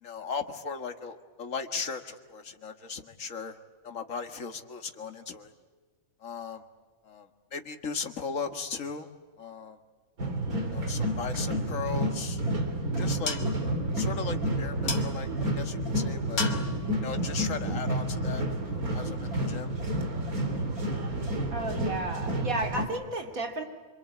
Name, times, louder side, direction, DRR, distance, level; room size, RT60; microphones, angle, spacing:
voice 1, 0.0-3.6 3.8-5.5 6.2-6.6 7.0-9.1 9.4-9.8 10.7-12.4 13.0-13.4 13.9-16.5 17.0-19.8, left 5 dB, 65° left, 7 dB, 2.1 m, -37 dB
sound 1, 10.2-22.8, right 1 dB, 90° right, 3.5 m, -30 dB
sound 2, 12.1-18.5, left 4 dB, 85° left, 2.4 m, -40 dB
voice 2, 21.5-23.6, right 2 dB, 70° right, 4 dB, 3.4 m, -32 dB
26.5 x 26.0 x 8.5 m, 1.4 s
omnidirectional pair, 1.5 m